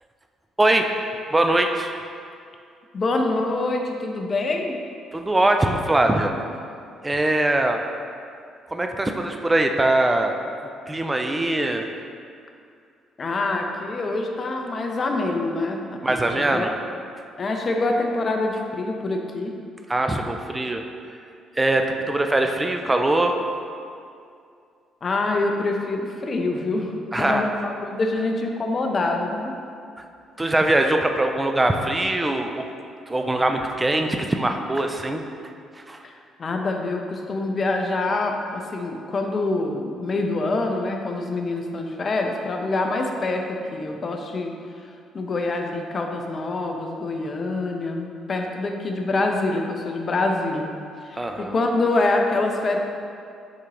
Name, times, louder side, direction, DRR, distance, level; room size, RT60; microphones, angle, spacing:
voice 1, 1.3-1.9 5.1-6.3 7.0-7.8 8.7-10.3 10.9-11.9 16.0-16.7 19.9-20.8 21.6-23.4 27.1-27.5 30.4-32.7 33.1-35.2 35.9-36.0 51.2-51.5, right 1 dB, 20° right, 4 dB, 0.3 m, -22 dB
voice 2, 2.9-4.8 13.2-16.7 17.4-19.5 25.0-29.5 36.0-36.1 36.4-44.5 45.1-50.7 51.0-52.8, left 2 dB, 40° left, 3 dB, 0.5 m, -25 dB
4.9 x 3.6 x 2.9 m, 2.4 s
figure-of-eight pair, 45°, 0 cm